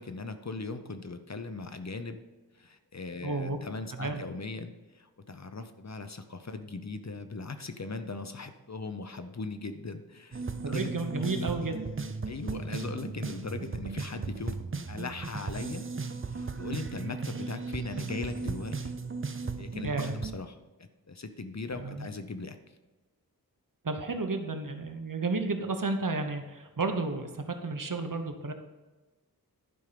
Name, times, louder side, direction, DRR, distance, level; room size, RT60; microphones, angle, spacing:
voice 1, 0.0-2.2 2.6-11.5 12.3-14.6 14.9-15.9 16.3-18.9 19.6-22.6, left 3 dB, 45° left, 9 dB, 0.8 m, -39 dB
voice 2, 3.2-3.6 3.9-4.2 10.6-11.8 19.8-20.1 21.8-22.1 23.8-28.5, right 3 dB, 60° right, 6 dB, 1.1 m, -32 dB
sound 1, 10.3-20.4, right 4 dB, 35° right, 0.6 m, -36 dB
11.5 x 5.4 x 5.1 m, 1.2 s
wide cardioid pair, 65°, 37 cm